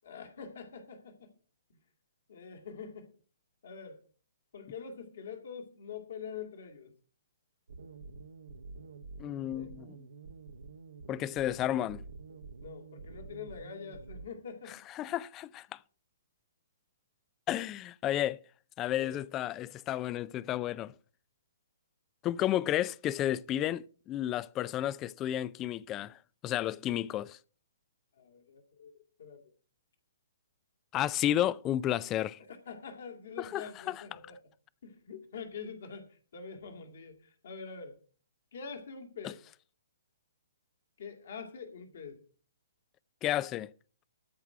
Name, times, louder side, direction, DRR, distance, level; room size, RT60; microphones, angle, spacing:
voice 1, 0.0-1.3 1.7-1.8 2.3-3.1 3.6-4.0 4.5-6.9 9.5-9.7 12.6-14.9 19.0-19.2 28.2-29.4 32.5-34.4 34.8-38.0 38.5-39.4 41.0-42.2, left 6 dB, 55° left, 2.2 m, -45 dB
sound 1, 7.7-14.3, right 4 dB, 70° right, 1.1 m, -48 dB
voice 2, 9.2-9.9 11.1-12.0 15.0-15.8 17.5-18.4 18.8-20.9 22.2-27.4 30.9-32.4 33.4-34.0 39.2-39.3 43.2-43.7, left 12 dB, 25° left, 0.4 m, -32 dB
13.5 x 4.6 x 7.3 m
figure-of-eight pair, 125°, 0 cm